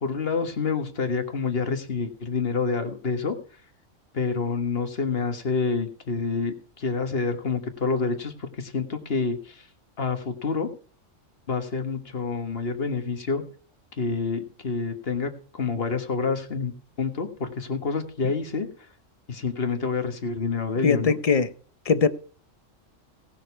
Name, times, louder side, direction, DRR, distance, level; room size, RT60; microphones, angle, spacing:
voice 1, 0.0-3.4 4.1-9.7 10.0-10.7 11.5-13.4 14.0-16.7 17.0-18.7 19.3-21.2, left 4 dB, 50° left, 1.8 m, -28 dB
voice 2, 20.8-21.5 21.9-22.1, left 5 dB, 35° left, 0.7 m, -20 dB
18.0 x 6.6 x 4.6 m
omnidirectional pair, 1.3 m